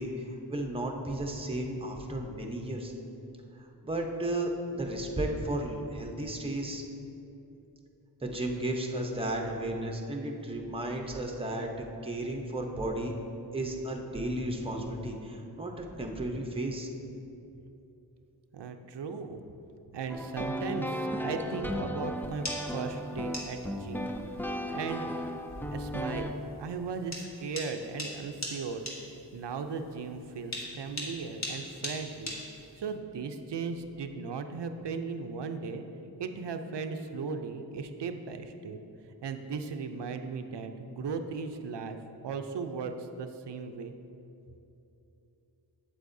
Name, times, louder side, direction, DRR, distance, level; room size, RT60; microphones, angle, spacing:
voice 1, 0.0-2.9 3.6-6.8 8.2-13.1 13.5-16.9, right 1 dB, 15° right, 2 dB, 0.7 m, -34 dB
voice 2, 18.5-19.4 19.9-24.1 24.7-25.1 25.7-32.3 32.8-35.8 36.2-38.8 39.2-42.0 42.2-43.9, right 5 dB, 75° right, 7 dB, 0.5 m, -37 dB
sound 1, 20.1-26.3, equal, 5° left, 0.3 m, -35 dB
sound 2, 22.2-32.9, left 1 dB, 40° left, 1.5 m, -41 dB
8.1 x 7.7 x 2.6 m, 2.9 s
wide cardioid pair, 70°, 42 cm